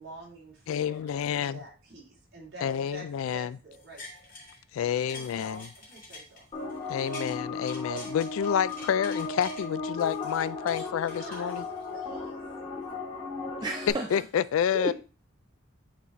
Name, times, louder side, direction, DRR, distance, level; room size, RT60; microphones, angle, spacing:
voice 1, 0.0-4.3 5.1-6.5 11.0-12.3, right 1 dB, 55° right, 3.0 m, -47 dB
voice 2, 0.7-1.6 2.6-3.6 4.7-5.7 6.9-11.6 14.1-14.9, left 8 dB, 90° left, 0.3 m, -29 dB
sound 1, 3.7-4.6 4.9-7.4 7.7-9.6 10.0-12.0 12.5-12.6, left 2 dB, 40° left, 2.1 m, -46 dB
sound 2, 6.5-13.9, left 3 dB, 25° left, 2.2 m, -36 dB
voice 3, 13.6-14.2 14.7-14.9, right 2 dB, 20° right, 0.5 m, -32 dB
8.3 x 4.0 x 3.0 m
head